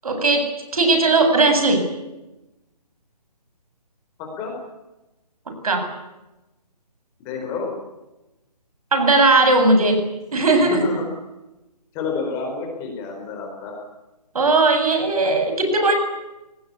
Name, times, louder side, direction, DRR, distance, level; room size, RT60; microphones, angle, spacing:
voice 1, 0.0-1.9 5.6-5.9 8.9-10.9 14.3-15.9, right 2 dB, 60° right, 7 dB, 7.7 m, -18 dB
voice 2, 4.2-4.5 7.2-7.7 10.6-11.0 11.9-13.8, left 4 dB, 15° left, 2 dB, 4.5 m, -29 dB
27.0 x 19.5 x 8.5 m, 0.99 s
hypercardioid pair, 165°, 21 cm